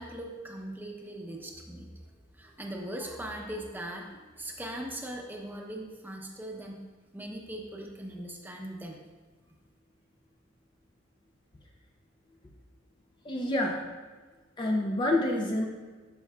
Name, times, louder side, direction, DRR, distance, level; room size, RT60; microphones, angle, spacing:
voice 1, 0.0-1.9 2.4-6.8 7.1-9.0, right 1 dB, 10° right, 0 dB, 0.8 m, -40 dB
voice 2, 13.3-13.8 14.6-15.7, left 1 dB, 25° left, 1 dB, 0.5 m, -27 dB
12.0 x 5.4 x 2.3 m, 1.4 s
head